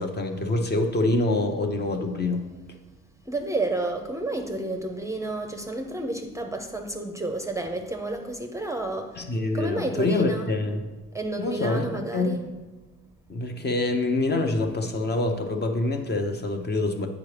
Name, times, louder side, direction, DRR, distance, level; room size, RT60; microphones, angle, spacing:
voice 1, 0.0-2.4 9.2-10.8 11.4-12.4 13.3-17.1, left 2 dB, 35° left, 5 dB, 0.7 m, -26 dB
voice 2, 3.3-9.2 9.5-10.5 11.1-12.4, right 2 dB, 10° right, 4 dB, 0.6 m, -30 dB
8.2 x 4.9 x 3.3 m, 1.2 s
cardioid pair, 90°, 30 cm